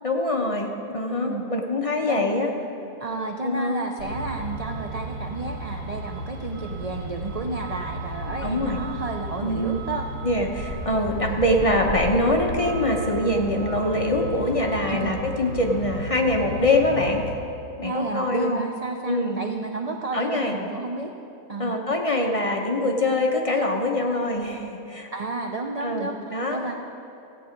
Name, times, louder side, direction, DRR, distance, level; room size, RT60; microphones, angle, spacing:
voice 1, 0.0-2.5 3.4-3.8 8.4-8.8 9.4-9.8 10.2-17.3 17.8-18.7 19.0-19.4 20.1-20.6 21.6-25.1 25.8-26.6, left 1 dB, 30° left, 1 dB, 0.8 m, -24 dB
voice 2, 3.0-10.1 11.2-11.4 14.9-15.2 17.8-21.1 21.5-21.8 25.1-26.7, right 3 dB, 55° right, 3 dB, 0.4 m, -31 dB
Truck, 4.0-17.3, right 1 dB, 75° right, 2.0 m, -34 dB
15.5 x 8.6 x 5.1 m, 2.8 s
omnidirectional pair, 1.5 m